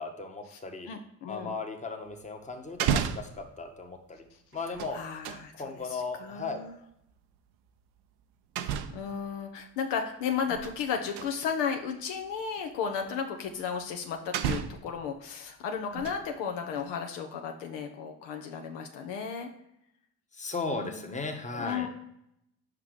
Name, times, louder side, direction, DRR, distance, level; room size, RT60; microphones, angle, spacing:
voice 1, 0.0-0.9 1.3-4.2 4.5-5.0 5.5-6.6 20.3-21.9, left 3 dB, 15° left, 3 dB, 1.2 m, -36 dB
voice 2, 0.9-1.5 4.9-5.5 5.9-6.7 8.6-19.5 20.7-21.3 21.6-21.9, left 6 dB, 65° left, 4 dB, 0.8 m, -34 dB
sound 1, 2.1-2.2 2.6-3.4 4.5-5.5 7.1-7.2 8.6-9.1 10.3-10.8 11.1-11.3 12.2-12.3 13.7-13.8 14.3-15.0 15.7-16.3 16.7-16.8, right 9 dB, 55° right, 0.6 m, -32 dB
5.7 x 3.6 x 4.8 m, 0.77 s
figure-of-eight pair, 50°, 46 cm